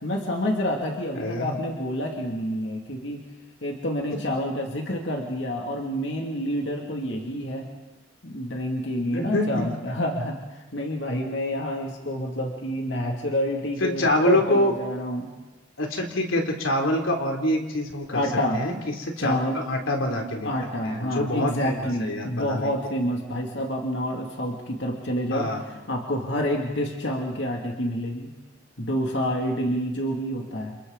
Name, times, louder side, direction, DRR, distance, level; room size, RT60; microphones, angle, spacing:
voice 1, 0.0-3.2 3.6-7.7 8.2-15.3 18.1-18.6 19.2-19.6 20.4-28.3 28.8-30.8, equal, 60° left, 0 dB, 2.6 m, -28 dB
voice 2, 1.2-1.6 9.1-9.6 13.8-14.7 15.8-18.2 18.5-18.7 19.0-19.4 19.6-20.5 20.8-22.7 25.3-25.6, left 1 dB, 90° left, 2 dB, 3.4 m, -25 dB
29.5 x 28.5 x 4.1 m, 1.1 s
head